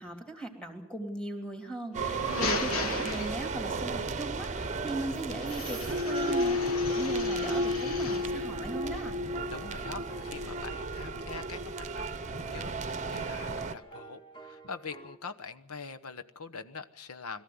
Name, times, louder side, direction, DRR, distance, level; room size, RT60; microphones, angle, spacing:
voice 1, 0.0-9.2, right 2 dB, 5° left, 5 dB, 3.1 m, -38 dB
sound 1, 1.9-3.8 5.4-8.4, left 3 dB, 70° left, 1.7 m, -36 dB
sound 2, 1.9-13.7, right 1 dB, 35° right, 0.9 m, -33 dB
sound 3, 8.8-15.2, right 2 dB, 20° left, 2.4 m, -51 dB
voice 2, 9.4-12.8 13.1-17.4, left 4 dB, 90° left, 10 dB, 1.2 m, -43 dB
22.0 x 14.5 x 9.5 m, 0.92 s
head